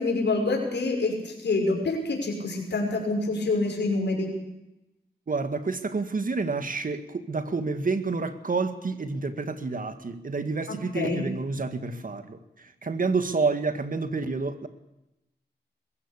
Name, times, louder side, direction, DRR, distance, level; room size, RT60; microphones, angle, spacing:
voice 1, 0.0-4.3 10.9-11.2, left 3 dB, 80° left, 1 dB, 6.0 m, -26 dB
voice 2, 5.3-12.4 12.8-14.7, right 4 dB, 50° right, 9 dB, 1.9 m, -29 dB
21.5 x 16.0 x 8.4 m, 0.93 s
cardioid pair, 70°, 18 cm